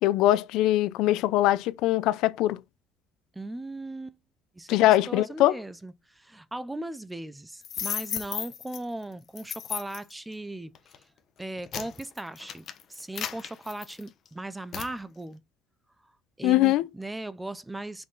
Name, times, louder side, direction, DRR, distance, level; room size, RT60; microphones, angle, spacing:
voice 1, 0.0-2.6 4.7-5.5 16.4-16.9, left 15 dB, 65° left, 0.5 m, -22 dB
voice 2, 3.4-4.2 4.5-10.7 11.4-15.4 16.4-18.0, right 1 dB, 5° right, 0.5 m, -38 dB
sound 1, 7.6-8.8 9.4-10.1 10.8-11.0 11.4-14.3 14.7-14.9, left 9 dB, 40° left, 1.0 m, -35 dB
5.5 x 5.2 x 4.0 m
cardioid pair, 160°, 0 cm